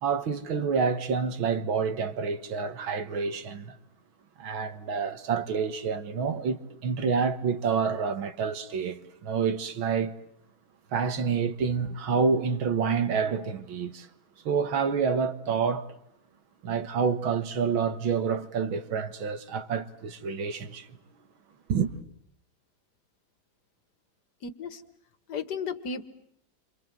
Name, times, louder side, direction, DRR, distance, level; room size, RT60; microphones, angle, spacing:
voice 1, 0.0-3.8 4.4-10.2 10.9-14.1 14.5-15.9 16.6-20.9 21.7-21.9, right 5 dB, 85° right, 2.3 m, -28 dB
voice 2, 24.4-24.8 25.3-26.1, left 5 dB, 55° left, 2.1 m, -34 dB
29.0 x 26.5 x 7.6 m
omnidirectional pair, 2.2 m